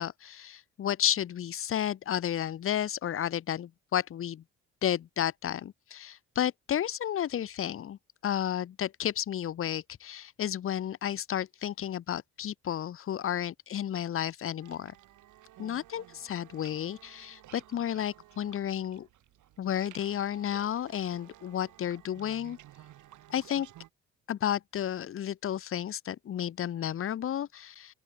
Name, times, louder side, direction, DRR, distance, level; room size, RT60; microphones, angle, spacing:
voice 1, 0.0-4.4 4.8-14.9 15.6-19.1 19.6-22.6 23.3-23.7 24.3-27.9, left 10 dB, 45° left, 0.8 m, -32 dB
sound 1, 14.6-23.9, right 14 dB, 80° right, 2.0 m, -54 dB
open air
cardioid pair, 90°, 30 cm